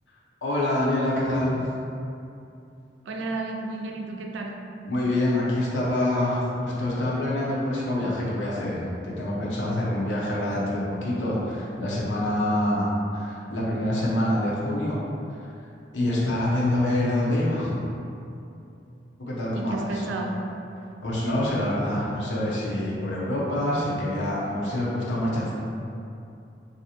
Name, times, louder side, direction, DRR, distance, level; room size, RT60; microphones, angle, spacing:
voice 1, 0.4-1.7 4.9-15.0 15.9-17.9 19.3-20.0 21.0-25.5, left 1 dB, 80° left, -6 dB, 0.7 m, -26 dB
voice 2, 3.0-4.7 19.5-20.5, right 2 dB, 80° right, 1 dB, 0.4 m, -32 dB
3.2 x 2.6 x 2.8 m, 2.7 s
head